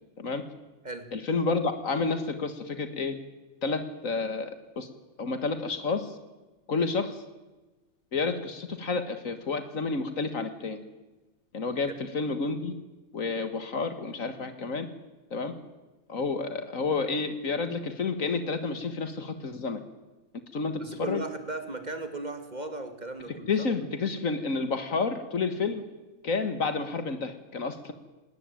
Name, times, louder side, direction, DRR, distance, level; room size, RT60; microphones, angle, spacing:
voice 1, 1.1-3.2 3.6-4.9 5.2-6.1 6.7-7.2 8.1-10.8 11.5-12.7 13.1-14.9 15.3-15.5 16.1-19.8 20.5-21.2 23.5-25.8 26.2-27.9, left 4 dB, 70° left, 9 dB, 2.0 m, -30 dB
voice 2, 20.8-23.7, right 2 dB, 30° right, 8 dB, 2.4 m, -36 dB
19.5 x 19.0 x 9.0 m, 1.1 s
omnidirectional pair, 1.5 m